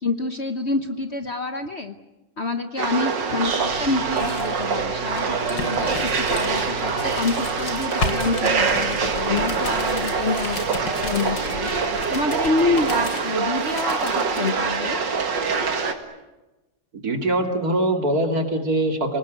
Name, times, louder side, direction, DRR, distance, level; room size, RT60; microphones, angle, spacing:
voice 1, 0.0-1.9 2.4-15.0, left 3 dB, 40° left, 8 dB, 1.2 m, -27 dB
sound 1, 2.8-15.9, right 5 dB, 75° right, 2.6 m, -24 dB
sound 2, 3.6-14.5, left 2 dB, 75° left, 3.6 m, -34 dB
voice 2, 17.0-19.2, right 1 dB, 55° right, 5 dB, 3.2 m, -22 dB
29.5 x 19.0 x 9.3 m, 1.0 s
omnidirectional pair, 2.0 m